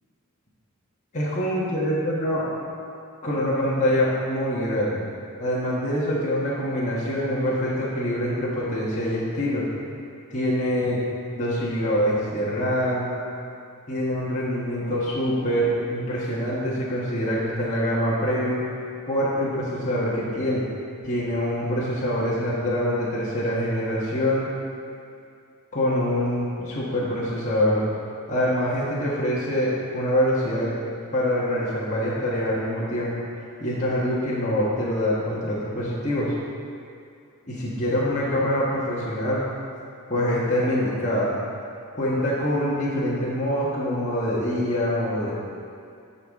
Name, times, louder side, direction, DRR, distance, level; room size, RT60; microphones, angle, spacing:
voice 1, 1.1-2.5 3.2-5.0 5.4-9.6 10.3-11.0 11.4-13.1 13.9-18.6 19.1-20.6 21.0-24.5 25.7-27.8 28.3-30.7 31.1-33.2 33.6-36.3 37.5-39.4 40.1-41.3 41.9-45.3, equal, 35° left, -8 dB, 1.4 m, -25 dB
14.0 x 5.5 x 3.6 m, 2.5 s
head